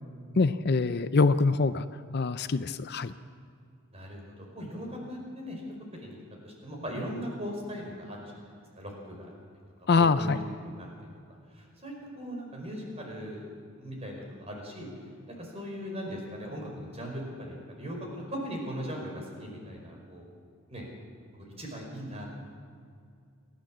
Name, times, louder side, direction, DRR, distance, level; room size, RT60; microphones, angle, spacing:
voice 1, 0.4-1.9 2.1-3.1 9.9-10.4, left 4 dB, 50° left, 12 dB, 0.5 m, -24 dB
voice 2, 3.9-5.6 5.9-8.4 8.7-9.3 10.2-10.4 10.8-10.9 11.5-13.4 13.8-14.9 15.3-20.2 20.7-20.9 21.4-22.3, equal, 30° right, 0 dB, 4.9 m, -39 dB
30.0 x 11.5 x 7.4 m, 2.4 s
head